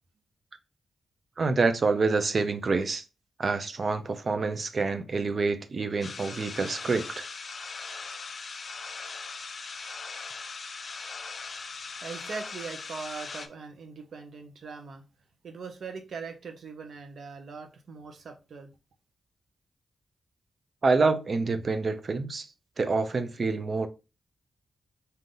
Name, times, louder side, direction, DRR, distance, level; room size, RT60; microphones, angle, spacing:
voice 1, 1.4-3.0 3.4-7.3 20.8-22.5 22.8-23.9, right 4 dB, 55° right, 0.6 m, -27 dB
sound 1, 6.0-13.5, left 4 dB, 60° left, 0.5 m, -40 dB
voice 2, 12.0-15.0 15.4-18.7, right 5 dB, 70° right, 0.9 m, -41 dB
3.8 x 2.8 x 3.8 m
cardioid pair, 50°, 0 cm